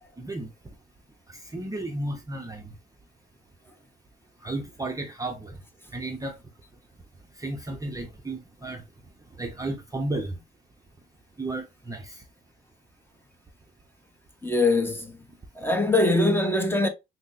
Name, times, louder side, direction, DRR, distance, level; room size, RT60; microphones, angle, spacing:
voice 1, 0.2-0.5 1.3-2.7 4.4-5.6 5.9-6.4 7.4-8.8 9.4-10.4 11.4-12.2, right 2 dB, 15° right, 0.6 m, -33 dB
voice 2, 14.4-15.2 15.6-16.9, left 2 dB, 10° left, 0.9 m, -22 dB
5.8 x 2.1 x 2.5 m
cardioid pair, 90°, 20 cm